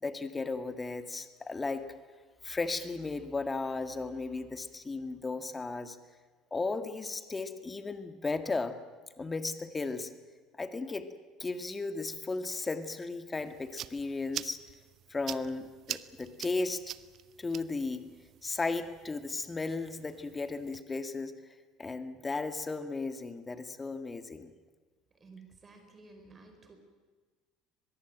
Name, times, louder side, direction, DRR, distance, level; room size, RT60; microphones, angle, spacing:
voice 1, 0.0-1.9 2.4-6.0 6.5-8.8 9.2-10.1 10.6-11.1 11.4-14.6 15.1-16.8 17.4-18.0 18.4-21.3 21.8-24.5, left 3 dB, 20° left, 9 dB, 1.9 m, -35 dB
sound 1, 13.4-20.8, right 11 dB, 50° right, 0.8 m, -45 dB
voice 2, 25.2-26.8, right 3 dB, 30° right, 6 dB, 4.8 m, -53 dB
22.5 x 22.0 x 9.1 m, 1.4 s
hypercardioid pair, 65°, 0 cm